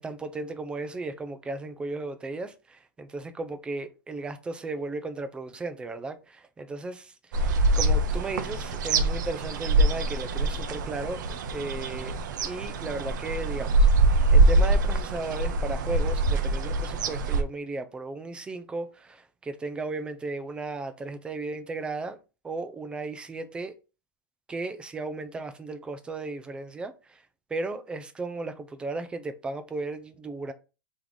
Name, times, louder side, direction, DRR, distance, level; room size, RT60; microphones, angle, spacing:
voice 1, 0.0-12.2 12.4-13.9 14.3-22.2 22.4-23.7 24.5-27.2 27.5-30.5, right 3 dB, 10° right, 0.4 m, -35 dB
sound 1, 7.3-17.4, right 2 dB, 65° right, 0.7 m, -24 dB
3.5 x 3.1 x 3.8 m
supercardioid pair, 150°, 11 cm